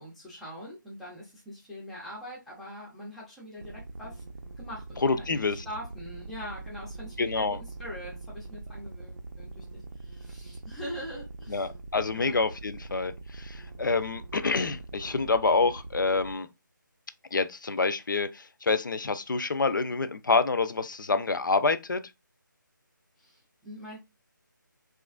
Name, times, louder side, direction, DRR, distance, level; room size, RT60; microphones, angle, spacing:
voice 1, 0.0-4.2 4.6-11.7 12.1-12.3 23.2-24.0, equal, ahead, 0.3 m, -43 dB
sound 1, 3.6-16.3, right 3 dB, 70° right, 0.5 m, -43 dB
voice 2, 5.0-5.6 7.2-7.6 11.5-16.5 17.3-22.0, left 4 dB, 70° left, 0.4 m, -27 dB
3.0 x 2.4 x 2.3 m
figure-of-eight pair, 155°, 11 cm